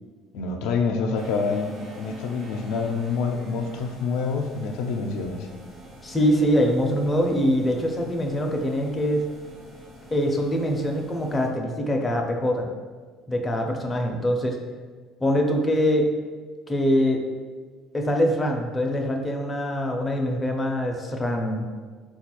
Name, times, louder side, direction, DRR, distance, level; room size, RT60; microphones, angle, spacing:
voice 1, 0.3-5.5, left 4 dB, 80° left, 3 dB, 0.4 m, -27 dB
sound 1, 1.1-11.5, right 1 dB, 40° right, 0.8 m, -45 dB
voice 2, 6.0-9.3 10.1-12.7 13.3-14.6 15.2-16.1 16.7-17.2 17.9-21.6, equal, 15° left, 1 dB, 0.4 m, -23 dB
4.3 x 2.3 x 2.9 m, 1.5 s
cardioid pair, 115°, 0 cm